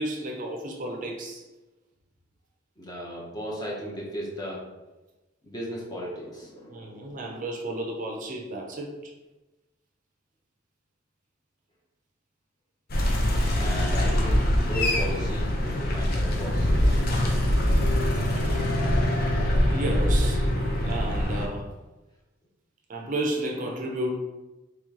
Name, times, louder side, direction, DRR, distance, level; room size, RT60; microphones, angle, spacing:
voice 1, 0.0-1.5 6.7-9.1 18.4-18.6 19.7-20.5 20.8-21.7 22.9-24.1, right 1 dB, 45° right, 1 dB, 0.5 m, -32 dB
voice 2, 2.8-4.6 5.4-7.0 13.5-16.7, equal, 20° left, -3 dB, 0.8 m, -35 dB
sound 1, 12.9-21.5, left 1 dB, 55° left, 0.6 m, -23 dB
3.0 x 3.0 x 3.7 m, 1.1 s
head